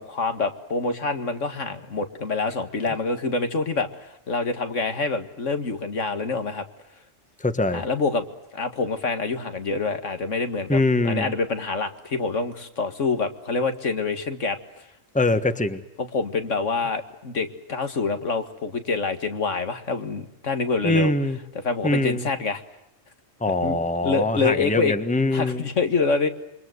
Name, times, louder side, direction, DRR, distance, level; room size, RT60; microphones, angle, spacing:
voice 1, 0.0-6.6 7.7-8.2 8.5-14.6 16.0-21.1 21.6-22.6 23.6-23.8 24.0-24.9 25.3-26.3, left 4 dB, 70° left, 8 dB, 2.2 m, -26 dB
voice 2, 7.4-7.8 10.7-11.3 15.1-15.8 20.8-21.4 21.8-22.2 23.4-25.6, left 2 dB, 5° left, 10 dB, 1.4 m, -23 dB
27.5 x 24.0 x 8.0 m, 0.84 s
omnidirectional pair, 1.3 m